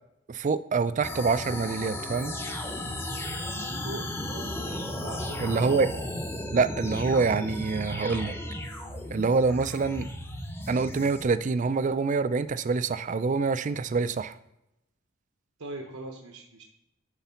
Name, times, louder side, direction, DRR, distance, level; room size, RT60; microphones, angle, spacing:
voice 1, 0.3-2.3 5.4-5.9 6.5-8.3 9.1-10.1 10.7-14.4, right 4 dB, 35° right, 14 dB, 0.3 m, -26 dB
sound 1, 1.0-11.3, left 1 dB, 10° left, 0.8 m, -35 dB
voice 2, 3.8-5.8 15.6-16.6, right 2 dB, 80° right, 2 dB, 0.9 m, -41 dB
9.8 x 3.9 x 5.7 m, 0.88 s
head